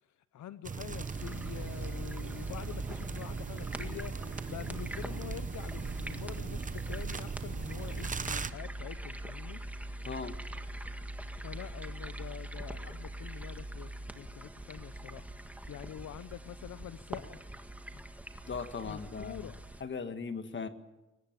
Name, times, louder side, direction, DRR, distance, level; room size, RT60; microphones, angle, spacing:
voice 1, 0.0-9.6 11.4-17.4 18.8-19.6, left 11 dB, 75° left, 13 dB, 0.8 m, -46 dB
sound 1, 0.6-8.5, right 5 dB, 25° right, 0.8 m, -39 dB
sound 2, 0.9-19.8, right 1 dB, 5° right, 1.7 m, -43 dB
sound 3, 3.6-6.6 7.0-7.1 7.5-7.6 7.9-8.0, left 2 dB, 90° left, 8.0 m, -56 dB
voice 2, 18.5-19.5 19.8-20.7, left 5 dB, 40° left, 9 dB, 1.8 m, -38 dB
22.5 x 19.0 x 9.1 m, 1.0 s
cardioid pair, 140°, 29 cm